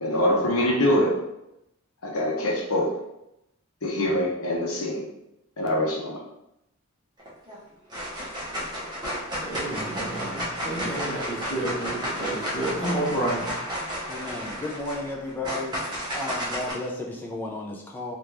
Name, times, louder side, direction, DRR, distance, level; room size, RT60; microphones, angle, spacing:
voice 1, 0.0-1.2 2.0-2.9 3.8-5.1 5.6-6.2, left 1 dB, 80° left, -1 dB, 0.8 m, -24 dB
sound 1, 7.2-7.6 7.9-16.7, equal, 20° right, 0.9 m, -32 dB
voice 2, 9.4-13.5, right 1 dB, 25° left, -8 dB, 0.9 m, -30 dB
voice 3, 14.1-15.8 16.1-18.2, left 2 dB, 10° left, -2 dB, 0.4 m, -33 dB
3.4 x 2.5 x 3.0 m, 0.85 s
head